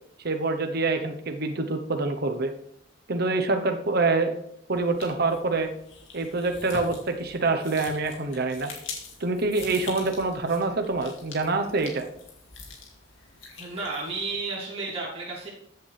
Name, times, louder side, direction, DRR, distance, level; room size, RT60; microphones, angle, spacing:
voice 1, 0.2-2.5 3.1-4.3 4.7-5.7 6.1-8.7 9.2-12.1, right 3 dB, 55° right, 5 dB, 1.0 m, -26 dB
sound 1, 4.7-14.4, left 4 dB, 85° left, 2.6 m, -44 dB
voice 2, 13.6-15.5, right 3 dB, 30° right, -7 dB, 3.1 m, -32 dB
14.0 x 8.1 x 3.4 m, 0.74 s
head